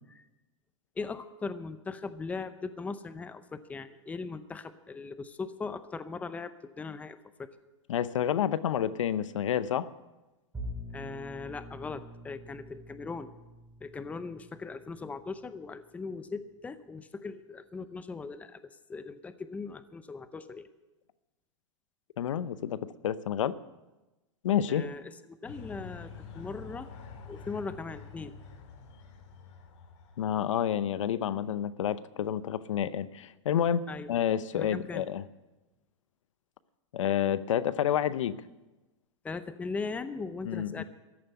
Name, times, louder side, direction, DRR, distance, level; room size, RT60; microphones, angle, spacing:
voice 1, 1.0-7.5 10.9-13.3 13.8-20.7 24.7-26.9 27.3-28.3 33.9-34.1 34.5-35.1 39.2-40.8, left 4 dB, 10° left, 12 dB, 0.6 m, -39 dB
voice 2, 7.9-9.9 22.2-23.6 24.4-24.9 30.2-35.2 36.9-38.4 40.4-40.8, left 9 dB, 85° left, 16 dB, 0.7 m, -29 dB
Bowed string instrument, 10.5-15.6, equal, 10° right, 2.4 m, -45 dB
sound 1, 25.5-30.3, left 5 dB, 65° left, 2.9 m, -47 dB
14.0 x 7.6 x 9.5 m, 1.1 s
hypercardioid pair, 135°, 16 cm